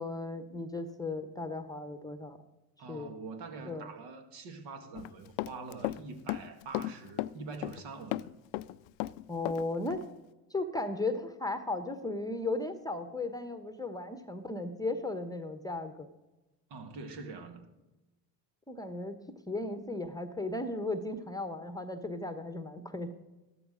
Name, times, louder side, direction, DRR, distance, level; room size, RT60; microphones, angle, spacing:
voice 1, 0.0-2.4 2.9-3.1 3.7-3.9 9.3-10.0 10.5-16.1 18.7-19.2 19.5-23.1, left 2 dB, 10° left, 9 dB, 1.0 m, -36 dB
voice 2, 2.8-8.3 16.7-17.7, right 4 dB, 60° right, 5 dB, 2.0 m, -44 dB
Run, 5.0-6.0 6.3-7.8 8.1-9.6 9.9-10.0, left 18 dB, 60° left, 0.5 m, -35 dB
13.0 x 12.5 x 3.9 m, 1.0 s
hypercardioid pair, 70°, 49 cm